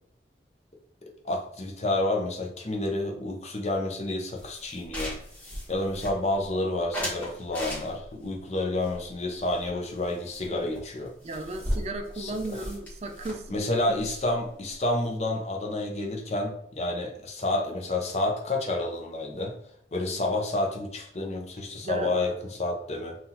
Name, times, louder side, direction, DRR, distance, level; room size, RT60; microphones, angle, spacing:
voice 1, 1.0-5.1 5.4-11.1 12.2-12.6 13.5-19.5 19.9-23.2, left 2 dB, 40° left, 1 dB, 0.7 m, -29 dB
sound 1, 4.4-6.5 6.9-8.2 8.8-10.1 10.3-10.5 10.8-10.9 11.1-14.9, equal, 10° left, 1.3 m, -37 dB
voice 2, 11.2-13.6 13.9-14.0 21.8-22.1, right 2 dB, 35° right, 6 dB, 0.4 m, -35 dB
5.6 x 2.5 x 2.9 m, 0.68 s
head